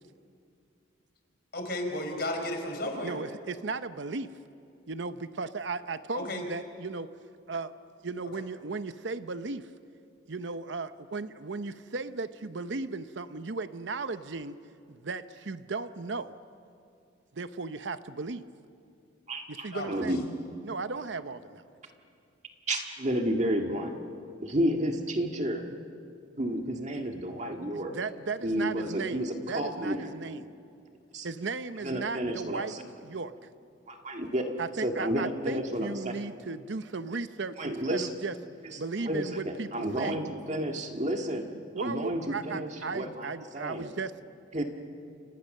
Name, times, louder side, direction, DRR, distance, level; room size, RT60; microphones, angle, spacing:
voice 1, 1.5-3.2 6.1-6.4 19.7-20.0, left 1 dB, 55° left, 4 dB, 4.4 m, -33 dB
voice 2, 3.0-4.3 4.9-7.1 7.5-7.7 8.0-9.7 10.3-14.6 14.9-16.4 17.3-18.5 19.5-20.2 20.6-21.6 27.7-30.5 31.2-32.7 33.0-33.3 34.6-38.3 38.8-40.2 41.7-44.1, right 4 dB, 65° right, 12 dB, 0.8 m, -36 dB
voice 3, 19.3-20.2 22.7-24.0 24.4-25.6 26.4-27.9 28.4-30.1 31.1-31.3 31.8-32.8 33.9-34.5 34.8-36.1 37.6-38.1 38.6-41.5 41.8-43.3 43.5-43.9 44.5-44.6, right 1 dB, 35° right, 3 dB, 1.8 m, -31 dB
29.5 x 27.0 x 6.6 m, 2.5 s
head